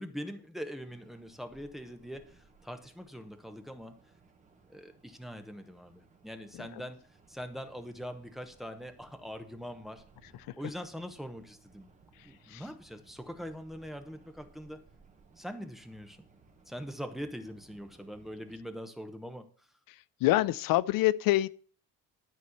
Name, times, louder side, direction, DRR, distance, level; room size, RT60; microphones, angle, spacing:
voice 1, 0.0-3.9 4.7-7.0 7.3-10.0 10.6-11.9 12.2-14.8 15.4-16.2 16.7-19.7, equal, ahead, 0.9 m, -42 dB
sound 1, 0.8-18.6, right 4 dB, 20° right, 1.4 m, -62 dB
voice 2, 19.9-21.5, left 16 dB, 70° left, 0.5 m, -27 dB
12.5 x 4.3 x 7.9 m
cardioid pair, 175°, 35 cm